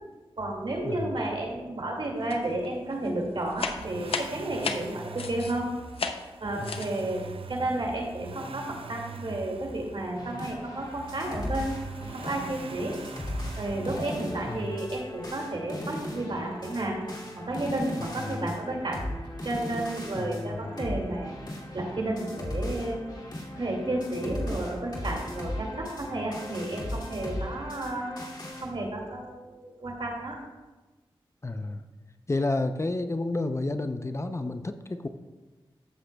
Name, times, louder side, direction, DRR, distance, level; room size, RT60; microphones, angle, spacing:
voice 1, 0.4-5.7 6.4-11.7 12.1-13.0 13.6-17.0 17.4-19.0 19.4-21.3 21.7-23.0 23.5-28.1 28.6-30.4, right 1 dB, 60° right, 0 dB, 2.3 m, -32 dB
sound 1, 2.3-2.7 2.9-5.6 5.9-6.3 6.6-7.0, left 5 dB, 90° left, 0.6 m, -34 dB
Accelerating revving vroom, 3.5-15.4 16.7-16.8, right 5 dB, 80° right, 0.5 m, -44 dB
sound 2, 10.2-28.7, left 1 dB, 50° left, 2.5 m, -38 dB
voice 2, 18.0-18.4 20.2-20.7 31.4-31.8 32.3-35.1, left 2 dB, 30° left, 8 dB, 0.6 m, -31 dB
14.5 x 7.9 x 2.3 m, 1.2 s
cardioid pair, 50°, 9 cm